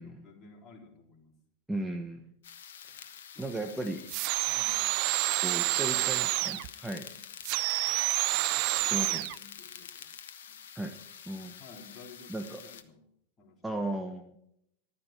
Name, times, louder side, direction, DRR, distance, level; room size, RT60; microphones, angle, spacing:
voice 1, 0.0-1.3 3.3-3.8 4.4-4.9 5.6-6.7 7.0-7.3 8.8-10.1 10.5-10.6 11.6-13.0 13.4-13.9, left 3 dB, 25° left, -1 dB, 4.1 m, -54 dB
voice 2, 1.7-2.3 2.8-3.0 3.4-4.0 5.4-7.1 8.8-9.3 10.7-11.0 11.3-11.5 12.3-12.6 13.6-14.4, right 1 dB, 5° right, 4 dB, 1.2 m, -36 dB
sound 1, 2.4-12.8, left 8 dB, 60° left, 1.2 m, -47 dB
sound 2, 4.1-6.7 7.4-9.4, right 23 dB, 45° right, 0.4 m, -28 dB
14.0 x 13.0 x 4.6 m, 0.73 s
figure-of-eight pair, 90°, 0 cm